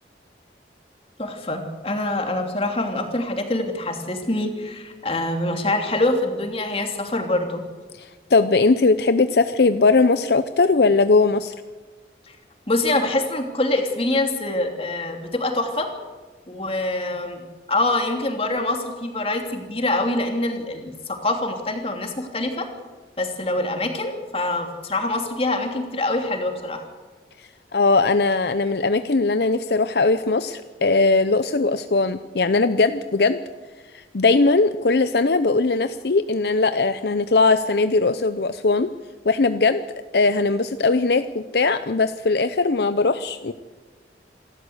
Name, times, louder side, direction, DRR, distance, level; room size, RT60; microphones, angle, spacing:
voice 1, 1.2-7.6 12.3-12.4 12.7-15.9 16.5-17.4 17.7-22.7 23.2-26.8, left 2 dB, 35° left, 4 dB, 2.9 m, -25 dB
voice 2, 7.9-11.5 27.7-33.4 33.9-38.9 39.2-39.9 40.1-43.5, left 3 dB, 65° left, 11 dB, 0.7 m, -19 dB
27.5 x 13.0 x 8.0 m, 1.3 s
head